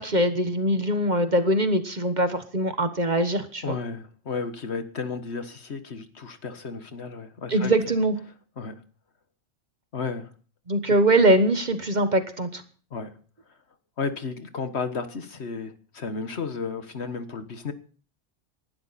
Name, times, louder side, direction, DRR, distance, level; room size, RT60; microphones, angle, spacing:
voice 1, 0.0-3.8 7.5-8.1 10.7-12.6, right 1 dB, 40° right, 9 dB, 1.3 m, -22 dB
voice 2, 3.6-7.7 8.6-8.8 9.9-10.3 12.9-13.1 14.0-17.7, left 4 dB, 60° left, 9 dB, 1.6 m, -33 dB
18.5 x 12.0 x 4.2 m, 0.41 s
omnidirectional pair, 1.3 m